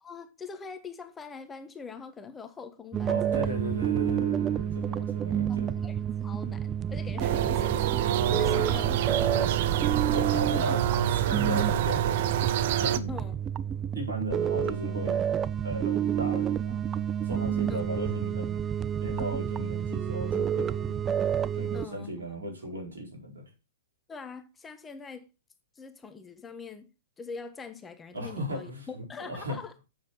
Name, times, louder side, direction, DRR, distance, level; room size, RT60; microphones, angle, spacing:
voice 1, 0.0-3.6 5.0-5.1 5.5-8.1 8.3-10.1 13.1-13.3 17.7-17.8 21.7-22.5 24.1-25.3 25.8-26.9 27.2-29.7, left 5 dB, 15° left, 1.1 m, -43 dB
sound 1, 2.9-21.9, right 9 dB, 20° right, 0.4 m, -29 dB
voice 2, 3.1-5.8 8.6-8.7 10.1-12.5 12.8-13.1 13.9-15.2 15.6-16.8 17.2-18.6 19.0-21.0 21.5-23.4 28.1-29.6, right 1 dB, 80° right, 4.6 m, -36 dB
sound 2, 7.2-13.0, right 11 dB, 50° right, 0.7 m, -27 dB
8.2 x 7.1 x 4.7 m
hypercardioid pair, 115°, 0 cm